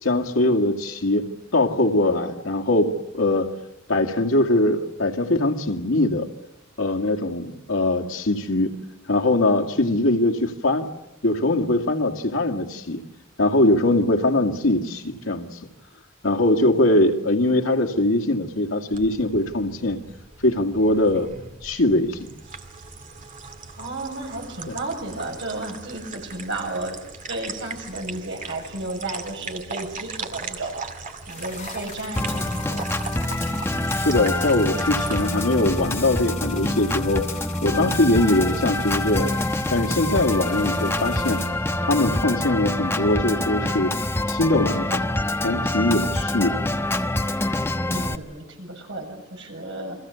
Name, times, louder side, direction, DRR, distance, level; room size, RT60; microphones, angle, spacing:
voice 1, 0.0-3.5 3.9-6.3 6.8-8.7 9.1-10.9 11.2-13.0 13.4-15.6 16.2-20.0 20.4-21.3 21.6-22.3 24.7-24.8 33.9-37.3 37.6-39.3 39.7-41.4 41.8-44.0 44.3-45.0 45.4-46.7, left 1 dB, 90° left, 4 dB, 2.3 m, -22 dB
sound 1, 18.9-36.6, right 4 dB, 40° right, 2.1 m, -39 dB
voice 2, 23.8-27.0 27.3-30.8 31.3-32.8 47.9-50.0, right 2 dB, 70° right, 2 dB, 7.4 m, -33 dB
sound 2, 31.3-41.5, left 6 dB, 40° left, 5.5 m, -40 dB
Organ, 32.2-48.2, left 1 dB, 10° left, 1.1 m, -26 dB
30.0 x 23.0 x 7.1 m, 0.98 s
head